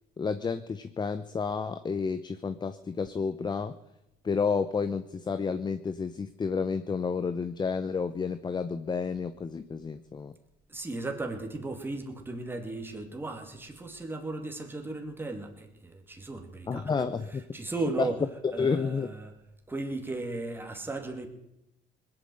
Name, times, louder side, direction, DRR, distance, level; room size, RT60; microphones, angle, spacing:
voice 1, 0.2-3.7 4.2-10.3 16.7-17.4 18.0-18.1 18.6-19.1, left 5 dB, 25° left, 11 dB, 0.7 m, -30 dB
voice 2, 10.7-16.9 17.5-18.2 18.5-19.3 19.7-21.3, right 2 dB, 15° right, 3 dB, 2.6 m, -36 dB
20.0 x 8.8 x 8.0 m, 0.87 s
cardioid pair, 110°, 17 cm